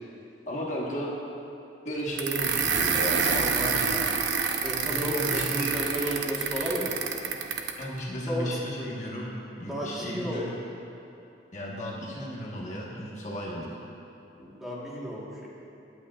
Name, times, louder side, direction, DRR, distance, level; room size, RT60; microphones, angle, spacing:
voice 1, 0.5-1.1 1.8-4.0 4.8-5.7 6.0-6.1 7.8-10.4 11.5-13.7, equal, 40° left, -4 dB, 1.4 m, -34 dB
sound 1, 2.2-7.8, right 6 dB, 70° right, 0.8 m, -27 dB
voice 2, 4.6-6.9 8.3-8.9 9.6-10.6 14.4-15.5, equal, ahead, -7 dB, 1.5 m, -33 dB
20.5 x 8.8 x 2.5 m, 2.8 s
head